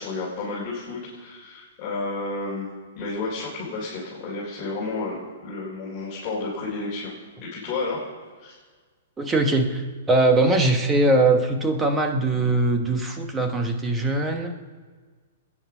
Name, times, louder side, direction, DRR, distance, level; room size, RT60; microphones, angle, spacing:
voice 1, 0.0-2.7 3.0-7.1 7.4-8.0 8.4-8.5, left 3 dB, 25° left, -8 dB, 3.8 m, -31 dB
voice 2, 9.2-14.7, right 2 dB, 10° right, 5 dB, 1.0 m, -21 dB
24.5 x 9.7 x 6.0 m, 1.5 s
hypercardioid pair, 165°, 0 cm